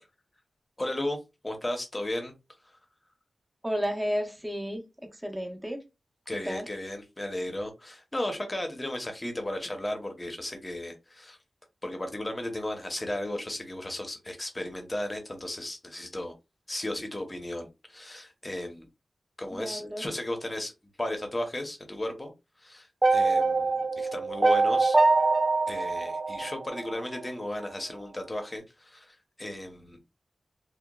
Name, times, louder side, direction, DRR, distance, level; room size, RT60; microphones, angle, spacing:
voice 1, 0.8-1.2 1.4-2.3 6.3-11.4 11.8-16.3 16.7-18.9 19.4-20.7 21.0-22.3 22.6-25.0 25.7-30.2, left 1 dB, 20° left, 4 dB, 0.8 m, -35 dB
voice 2, 3.6-4.8 5.2-5.8 6.4-6.7 19.5-20.0, equal, 10° right, 3 dB, 0.7 m, -32 dB
sound 1, 23.0-27.2, right 3 dB, 30° right, 0.3 m, -24 dB
2.8 x 2.2 x 2.2 m, 0.24 s
wide cardioid pair, 80°, 0 cm